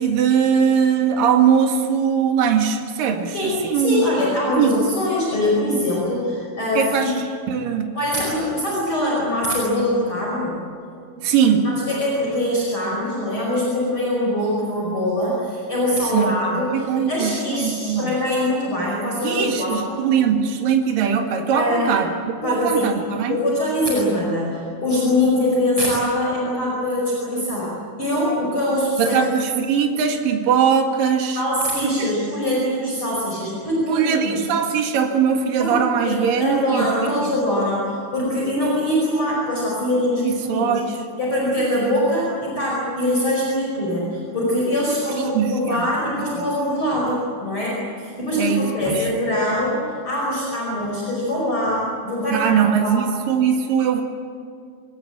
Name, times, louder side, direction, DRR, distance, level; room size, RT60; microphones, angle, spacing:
voice 1, 0.0-4.1 4.6-4.8 6.8-7.9 11.2-11.7 16.1-16.4 16.7-18.1 19.2-22.1 22.4-23.4 29.0-31.4 32.0-32.1 33.9-37.3 40.2-41.0 45.3-45.9 46.3-46.5 48.4-49.1 52.3-54.0, right 7 dB, 70° right, 3 dB, 3.6 m, -20 dB
voice 2, 3.3-7.1 7.9-10.7 11.6-20.0 21.5-22.0 22.4-22.9 23.3-29.2 31.4-34.4 35.6-40.7 41.2-53.0, left 1 dB, 35° left, -4 dB, 5.9 m, -23 dB
25.5 x 21.0 x 8.8 m, 2.2 s
omnidirectional pair, 4.2 m